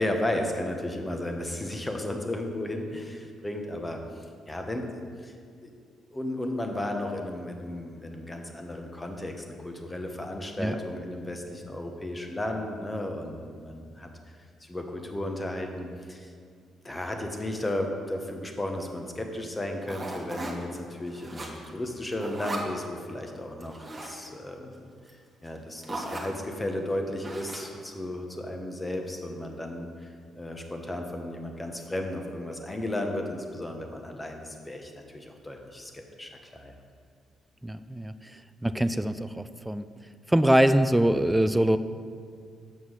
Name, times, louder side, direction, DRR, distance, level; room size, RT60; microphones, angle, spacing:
voice 1, 0.0-4.0 4.5-4.9 5.2-5.3 5.6-5.7 6.1-14.1 14.6-16.3 16.8-24.8 25.4-36.7, left 1 dB, 15° left, 3 dB, 1.1 m, -34 dB
sound 1, 19.8-20.8 21.1-21.8 22.1-22.7 23.6-24.2 25.1-25.2 25.5-25.6 25.8-26.3 27.2-27.8, right 2 dB, 25° right, 1.5 m, -37 dB
voice 2, 37.6-39.9 40.3-41.8, right 1 dB, 5° right, 12 dB, 0.4 m, -24 dB
7.4 x 5.8 x 6.3 m, 2.2 s
cardioid pair, 90°, 0 cm